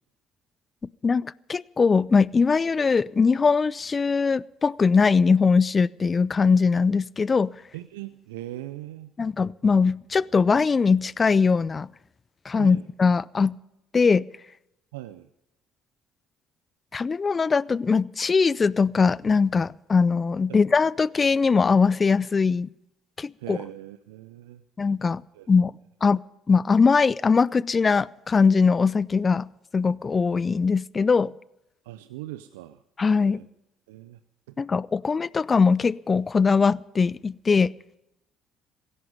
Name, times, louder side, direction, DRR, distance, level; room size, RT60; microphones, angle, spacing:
voice 1, 1.0-7.5 9.2-11.9 12.5-13.6 13.9-14.2 16.9-22.7 23.2-23.6 24.8-25.2 25.5-25.7 26.0-26.2 26.5-29.5 29.7-31.3 33.0-33.4 34.6-37.7, left 5 dB, 35° left, 0.5 m, -21 dB
voice 2, 7.7-9.1 12.6-12.9 14.9-15.3 20.5-20.6 23.4-24.6 25.3-25.5 31.8-32.8 33.2-33.5 33.9-34.2 34.5-34.6, right 15 dB, 85° right, 0.5 m, -39 dB
17.0 x 15.5 x 5.4 m
hypercardioid pair, 60°, 0 cm